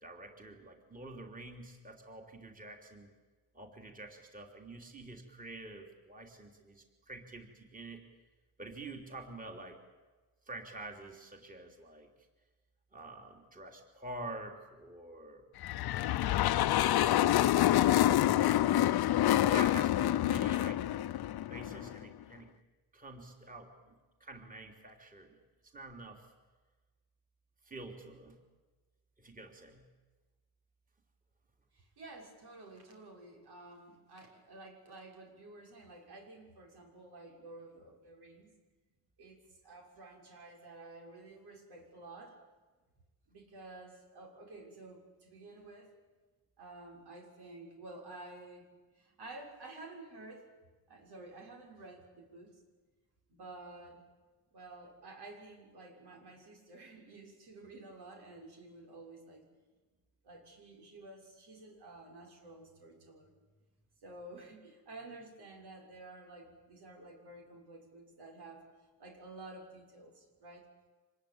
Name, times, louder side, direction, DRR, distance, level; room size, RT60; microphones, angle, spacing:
voice 1, 0.0-3.1 3.5-8.0 8.6-9.8 10.4-12.1 12.9-15.4 16.1-16.8 19.2-20.8 21.5-22.5 22.9-23.9 24.2-25.4 25.7-26.3 27.6-28.4 29.2-29.9, right 2 dB, 20° right, 3 dB, 3.3 m, -47 dB
sound 1, 15.6-22.0, left 13 dB, 75° left, 0.8 m, -27 dB
voice 2, 31.7-38.5 39.2-39.4 39.6-42.4 43.3-45.9 46.6-48.7 48.9-50.5 50.9-52.6 53.3-54.0 54.5-59.5 60.2-63.3 64.0-68.7 69.0-70.7, right 2 dB, 90° right, 1 dB, 6.5 m, -51 dB
25.5 x 20.5 x 8.8 m, 1.3 s
cardioid pair, 130°, 38 cm